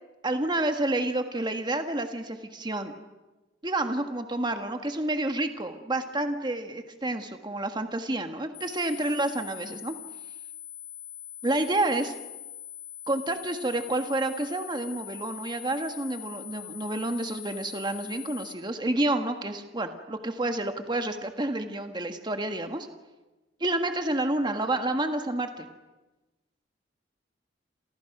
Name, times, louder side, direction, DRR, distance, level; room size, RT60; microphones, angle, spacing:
voice 1, 0.2-2.9 3.6-9.9 11.4-12.1 13.1-22.9 23.6-25.7, right 2 dB, 25° right, 6 dB, 1.6 m, -29 dB
sound 1, 8.5-18.5, left 12 dB, 70° left, 2.4 m, -43 dB
29.0 x 28.0 x 6.0 m, 1.1 s
head